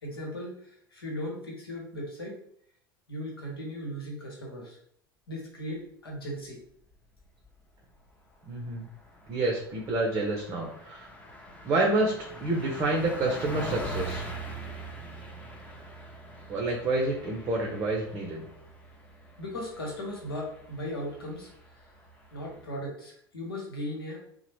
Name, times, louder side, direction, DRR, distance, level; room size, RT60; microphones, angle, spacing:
voice 1, 0.0-2.4 3.1-4.8 5.3-6.6 19.4-21.9 22.3-24.2, equal, 80° left, -1 dB, 0.9 m, -37 dB
Car passing by, 7.0-7.6 7.9-8.1 8.4-22.6, right 1 dB, 10° left, 0.7 m, -43 dB
voice 2, 8.5-8.9 9.3-11.1 11.6-12.1 12.4-14.2 16.5-18.4, right 2 dB, 30° right, 0 dB, 0.6 m, -28 dB
2.9 x 2.0 x 3.1 m, 0.66 s
figure-of-eight pair, 80°, 12 cm